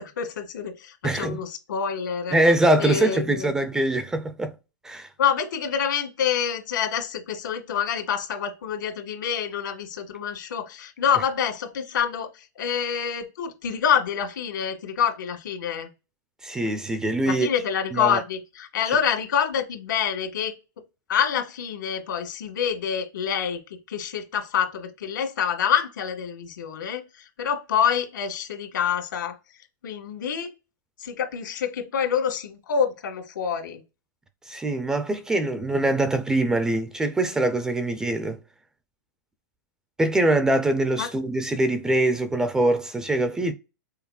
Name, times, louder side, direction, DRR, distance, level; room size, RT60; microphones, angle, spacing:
voice 1, 0.0-2.4 2.8-3.5 5.2-15.9 17.2-20.5 21.1-29.4 29.8-30.5 31.0-33.8 41.0-41.1, left 8 dB, 75° left, 1.6 m, -27 dB
voice 2, 1.0-1.4 2.3-4.5 4.8-5.1 16.4-17.5 17.9-18.2 34.5-38.4 40.0-43.5, right 2 dB, 5° right, 0.3 m, -23 dB
5.6 x 3.9 x 2.3 m
hypercardioid pair, 160°, 11 cm